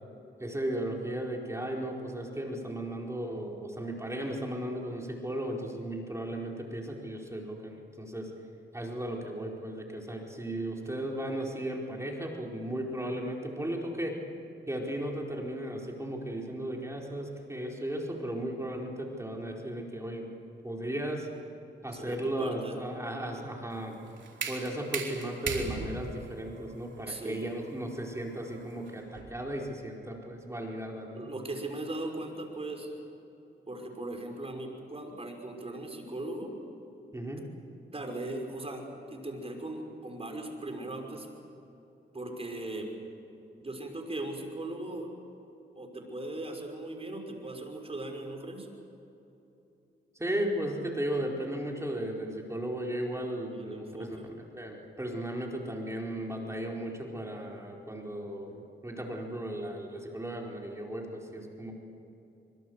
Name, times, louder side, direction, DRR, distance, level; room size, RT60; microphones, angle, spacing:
voice 1, 0.4-8.3 8.7-14.2 14.7-20.3 20.6-21.3 21.8-24.0 24.5-31.3 37.1-37.5 50.2-61.7, right 1 dB, 15° right, -1 dB, 4.5 m, -35 dB
voice 2, 21.9-22.8 27.0-27.4 31.2-32.9 33.7-36.5 37.9-41.3 42.1-42.9 43.6-45.1 45.7-48.7 53.5-54.3, right 2 dB, 30° right, 2 dB, 5.7 m, -38 dB
sound 1, 23.7-29.5, right 5 dB, 65° right, 3.9 m, -39 dB
25.5 x 24.5 x 8.1 m, 2.9 s
cardioid pair, 75°, 20 cm